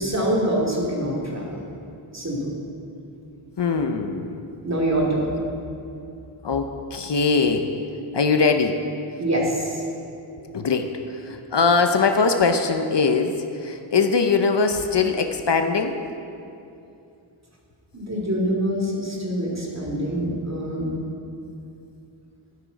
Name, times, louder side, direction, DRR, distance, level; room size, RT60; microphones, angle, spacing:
voice 1, 0.0-1.6 2.1-2.5 4.6-5.3 9.2-9.8 17.9-20.9, right 1 dB, 30° right, -3 dB, 2.6 m, -25 dB
voice 2, 3.6-4.4 6.4-7.7 8.1-8.8 10.4-16.0, left 4 dB, 55° left, 6 dB, 0.8 m, -21 dB
12.5 x 11.5 x 4.1 m, 2.6 s
wide cardioid pair, 80°, 49 cm